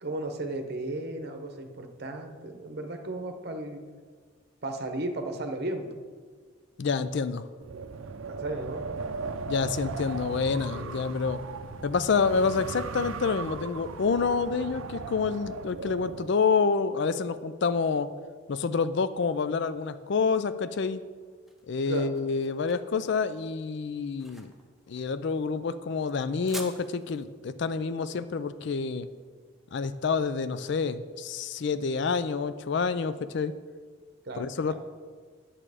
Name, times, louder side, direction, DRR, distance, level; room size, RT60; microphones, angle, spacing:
voice 1, 0.0-3.8 4.6-5.9 8.3-8.8 10.7-10.9 21.9-22.1 34.2-34.7, right 2 dB, 50° right, 5 dB, 0.9 m, -35 dB
voice 2, 6.8-7.4 9.5-11.4 11.8-18.1 18.5-21.0 21.7-24.5 24.9-29.1 29.7-33.5 34.4-34.7, left 5 dB, 55° left, 13 dB, 0.4 m, -28 dB
Wind, 7.6-16.3, right 4 dB, 80° right, 0.5 m, -38 dB
Bus, 8.9-14.7, left 2 dB, 40° left, 1.1 m, -53 dB
sound 1, 21.2-30.0, right 1 dB, ahead, 0.7 m, -49 dB
8.9 x 7.5 x 4.9 m, 1.5 s
head